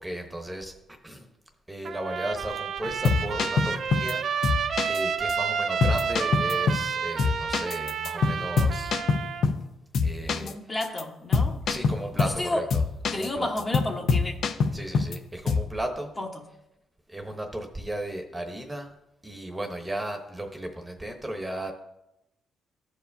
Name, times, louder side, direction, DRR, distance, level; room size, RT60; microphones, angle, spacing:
voice 1, 0.0-0.7 1.0-1.3 1.7-4.2 4.9-9.0 10.0-10.6 11.7-12.8 13.1-13.5 14.7-16.1 17.1-18.9 19.2-21.7, right 1 dB, 10° right, 1.0 m, -35 dB
Trumpet, 1.8-9.5, right 6 dB, 60° right, 0.5 m, -30 dB
sound 1, 2.8-4.1 4.4-5.0 5.3-5.4 5.8-6.9 7.2-9.7 9.9-10.5 10.8-11.0 11.3-12.4 12.7-13.3 13.6-15.2 15.5-15.7, left 4 dB, 65° left, 0.6 m, -25 dB
voice 2, 10.4-11.6 12.1-12.7 13.1-14.3 16.2-16.3, left 2 dB, 25° left, 1.1 m, -31 dB
14.0 x 4.8 x 2.7 m
cardioid pair, 90°, 0 cm